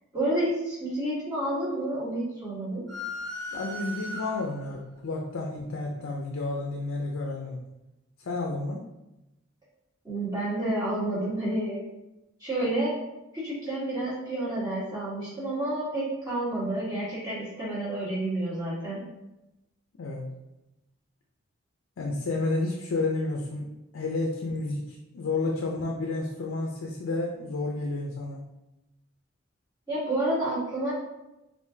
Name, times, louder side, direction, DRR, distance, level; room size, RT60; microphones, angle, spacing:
voice 1, 0.1-2.9 10.0-11.8 12.4-12.9 13.3-19.0 29.9-30.9, right 1 dB, 20° right, -9 dB, 1.3 m, -29 dB
sound 1, 2.9-4.7, left 1 dB, 55° right, 1.1 m, -37 dB
voice 2, 3.5-7.6 8.2-8.8 20.0-20.3 22.0-23.7 23.9-28.4, left 2 dB, 75° left, 0 dB, 0.4 m, -31 dB
3.7 x 2.5 x 2.6 m, 0.95 s
head